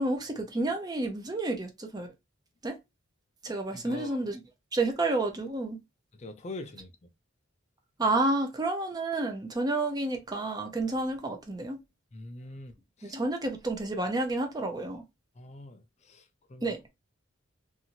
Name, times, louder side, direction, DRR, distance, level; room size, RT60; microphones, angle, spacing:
voice 1, 0.0-2.1 2.6-2.8 3.4-4.4 4.7-5.8 8.0-11.8 13.0-15.0 16.6-16.8, right 2 dB, 20° right, 0.6 m, -30 dB
voice 2, 3.7-4.2 6.1-7.1 12.1-13.2 15.4-16.7, left 2 dB, 35° left, 0.5 m, -44 dB
2.7 x 2.6 x 2.7 m
head